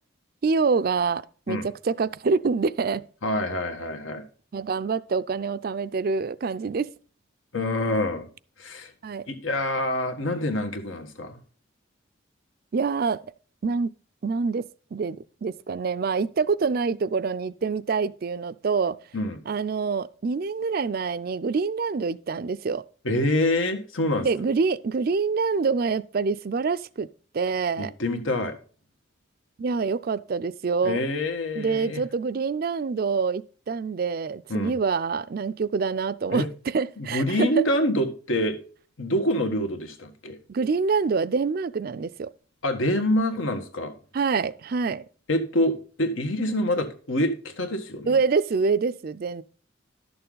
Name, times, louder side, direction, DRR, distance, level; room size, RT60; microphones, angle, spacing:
voice 1, 0.4-3.1 4.5-6.9 9.0-9.2 12.7-13.2 13.6-13.9 14.2-14.6 14.9-19.0 19.5-22.8 24.2-27.1 27.3-27.9 29.6-31.0 31.6-37.5 40.5-42.3 44.1-45.0 48.1-49.4, right 4 dB, 50° right, 0.4 m, -26 dB
voice 2, 3.2-4.2 7.5-8.3 8.6-8.9 9.3-11.4 19.1-19.4 23.0-24.3 27.8-28.5 30.8-32.0 34.5-34.8 36.3-36.5 37.0-38.6 39.0-40.4 42.6-43.9 45.3-48.2, left 1 dB, 85° left, 1.6 m, -26 dB
11.5 x 6.8 x 3.9 m
head